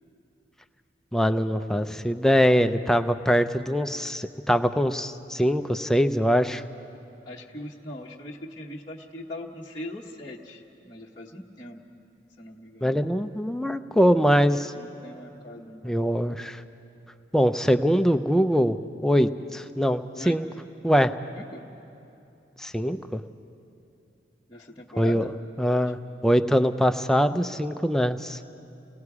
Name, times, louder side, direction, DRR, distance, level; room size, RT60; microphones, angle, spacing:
voice 1, 1.1-6.6 12.8-14.7 15.8-16.6 17.3-18.8 19.0-20.4 20.8-21.1 22.6-23.2 25.0-25.3 25.6-28.4, equal, 5° left, 8 dB, 0.5 m, -23 dB
voice 2, 7.2-11.8 12.4-13.0 14.8-15.9 20.1-20.4 21.4-21.7 24.5-25.3 25.8-25.9, left 1 dB, 25° left, -5 dB, 1.1 m, -41 dB
29.5 x 18.5 x 4.8 m, 2.8 s
head